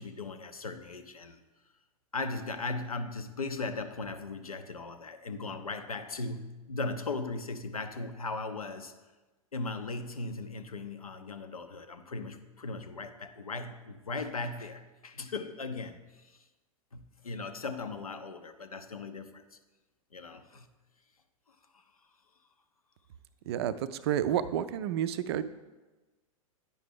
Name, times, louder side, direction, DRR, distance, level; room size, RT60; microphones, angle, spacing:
voice 1, 0.0-1.4 2.1-8.9 9.5-16.4 16.9-19.6 20.1-20.7 21.5-21.8, left 3 dB, 80° left, 9 dB, 0.6 m, -38 dB
voice 2, 23.5-25.4, right 10 dB, 45° right, 14 dB, 0.4 m, -30 dB
9.0 x 5.7 x 3.5 m, 1.2 s
figure-of-eight pair, 95°, 18 cm